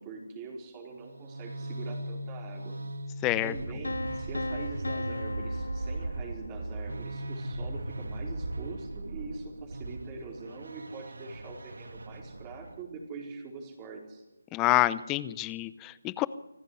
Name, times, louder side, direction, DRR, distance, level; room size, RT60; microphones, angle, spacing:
voice 1, 0.0-2.8 3.4-14.2, right 4 dB, 20° right, 0 dB, 4.5 m, -43 dB
sound 1, 1.0-12.8, right 2 dB, 70° right, 2.1 m, -38 dB
voice 2, 3.2-3.5 14.5-16.3, left 17 dB, 15° left, 18 dB, 0.7 m, -27 dB
sound 2, 3.8-6.7, left 2 dB, 75° left, 1.3 m, -37 dB
26.0 x 15.0 x 10.0 m, 1.0 s
figure-of-eight pair, 155°, 0 cm